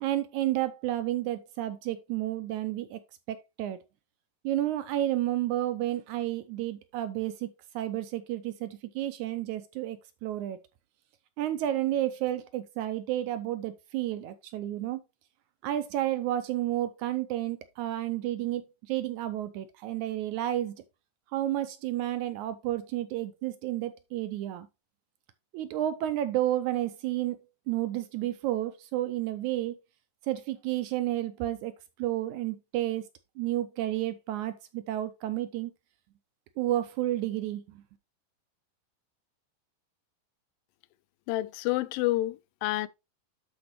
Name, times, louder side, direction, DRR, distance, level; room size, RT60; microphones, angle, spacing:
voice 1, 0.0-3.0 3.3-3.8 4.4-10.6 11.4-15.0 15.6-20.8 21.3-24.7 25.5-27.4 27.7-29.8 30.2-31.7 32.0-33.1 33.4-35.7 36.6-37.8, right 13 dB, 80° right, 1.8 m, -31 dB
voice 2, 41.3-42.9, left 17 dB, 85° left, 2.3 m, -29 dB
12.0 x 4.4 x 3.1 m
omnidirectional pair, 3.9 m